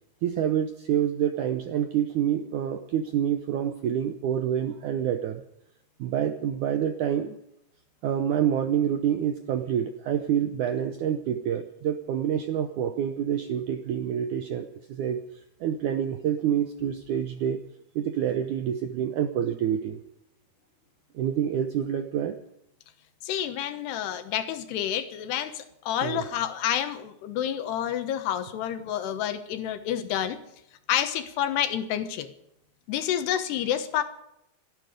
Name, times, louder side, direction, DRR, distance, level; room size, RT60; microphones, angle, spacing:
voice 1, 0.2-5.4 6.0-7.4 8.0-15.2 15.6-17.6 17.9-20.0 21.1-22.4 26.0-26.2, right 9 dB, 80° right, 7 dB, 1.8 m, -27 dB
voice 2, 23.2-30.4 30.9-32.3 32.9-34.0, left 10 dB, 85° left, 9 dB, 3.3 m, -29 dB
27.5 x 9.9 x 5.1 m, 0.79 s
omnidirectional pair, 4.7 m